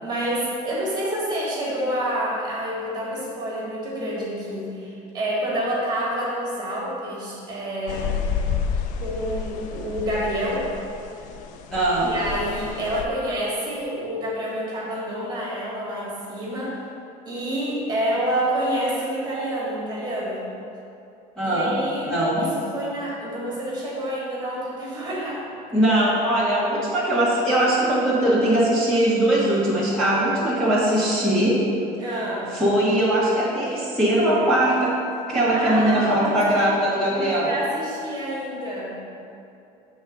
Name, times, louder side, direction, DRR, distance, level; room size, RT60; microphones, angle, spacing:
voice 1, 0.0-8.2 9.0-10.7 12.1-16.8 17.2-20.5 21.4-25.5 32.0-32.6 35.5-36.7 37.0-39.0, right 1 dB, 30° right, -5 dB, 1.5 m, -28 dB
sound 1, 7.9-13.0, left 6 dB, 60° left, 0.4 m, -30 dB
voice 2, 11.7-12.1 21.4-21.7 22.1-22.4 25.7-31.6 32.5-34.9 35.3-37.5, right 1 dB, 5° left, -10 dB, 1.1 m, -20 dB
6.4 x 3.5 x 5.8 m, 2.7 s
cardioid pair, 170°, 15 cm